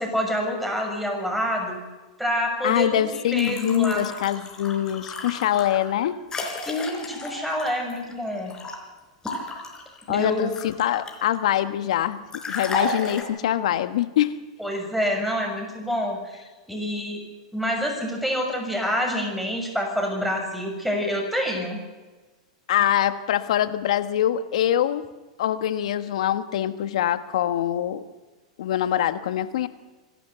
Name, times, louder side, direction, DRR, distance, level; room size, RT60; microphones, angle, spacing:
voice 1, 0.0-1.8 2.2-4.0 6.6-8.5 10.1-10.5 14.6-16.4 16.7-17.2 17.5-21.8, equal, ahead, 1 dB, 6.8 m, -27 dB
voice 2, 2.6-6.2 10.1-12.2 12.5-14.4 22.7-25.0 25.4-28.0 28.6-29.7, left 11 dB, 70° left, 11 dB, 1.4 m, -24 dB
sound 1, 3.3-8.8 9.2-11.3 12.3-13.2, left 2 dB, 20° left, 4.4 m, -34 dB
27.0 x 12.0 x 8.1 m, 1.2 s
hypercardioid pair, 120°, 3 cm